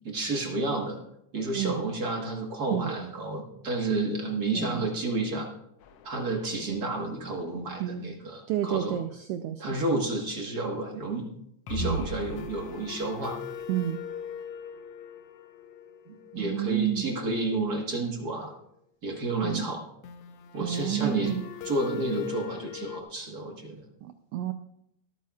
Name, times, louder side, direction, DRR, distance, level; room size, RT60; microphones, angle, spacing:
voice 1, 0.0-1.0 1.3-5.5 6.0-9.0 9.6-11.3 11.7-13.4 16.1-18.5 19.0-19.8 20.5-21.3 21.6-23.8, right 2 dB, 40° right, 1 dB, 1.6 m, -31 dB
voice 2, 1.5-2.0 2.7-2.9 4.5-4.9 7.8-8.1 8.5-9.9 11.8-12.1 13.7-14.0 16.3-17.1 19.4-19.7 20.6-21.4 24.0-24.5, right 12 dB, 80° right, 8 dB, 1.4 m, -30 dB
sound 1, 5.8-7.0 7.3-7.4 7.7-7.8 11.7-17.3 20.0-23.0, left 5 dB, 70° left, 1.5 m, -40 dB
24.5 x 8.7 x 2.4 m, 0.76 s
omnidirectional pair, 3.3 m